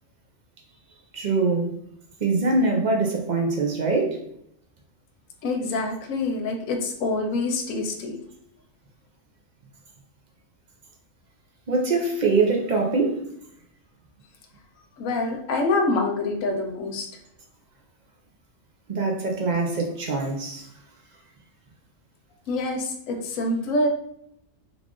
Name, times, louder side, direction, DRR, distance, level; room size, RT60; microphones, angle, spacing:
voice 1, 1.1-1.7 2.2-4.2 11.7-13.2 18.9-20.6, right 3 dB, 50° right, 1 dB, 0.6 m, -23 dB
voice 2, 5.4-8.2 15.0-17.1 22.5-23.9, left 2 dB, 85° left, 4 dB, 1.0 m, -26 dB
3.4 x 2.4 x 3.6 m, 0.74 s
omnidirectional pair, 1.3 m